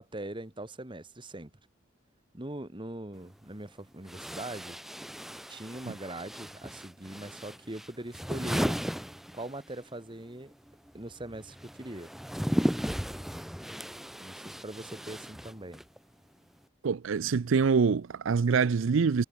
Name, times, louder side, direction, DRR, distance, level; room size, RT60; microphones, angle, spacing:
voice 1, 0.0-1.5 2.3-4.8 5.5-8.8 9.3-10.5 10.9-12.1 14.2-15.8, right 1 dB, 25° right, 1.7 m, -41 dB
sound 1, 3.1-3.2 4.0-9.9 10.1-16.0, equal, ahead, 1.1 m, -35 dB
voice 2, 16.8-19.2, right 5 dB, 75° right, 0.5 m, -25 dB
head